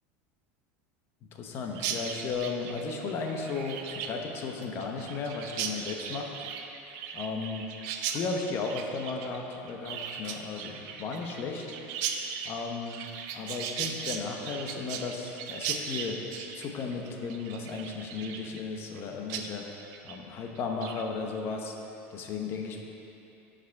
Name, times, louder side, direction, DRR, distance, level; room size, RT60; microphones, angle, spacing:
voice 1, 1.2-6.3 7.1-7.7 8.1-11.6 12.4-13.1 13.3-16.2 16.5-19.6 20.0-21.8 22.1-22.8, left 4 dB, 35° left, 2 dB, 0.8 m, -35 dB
Chirp tweet, 1.7-19.0 19.3-19.5 19.8-20.2 20.6-21.0, right 7 dB, 55° right, 0.6 m, -38 dB
11.0 x 5.0 x 3.5 m, 2.9 s
supercardioid pair, 145°, 7 cm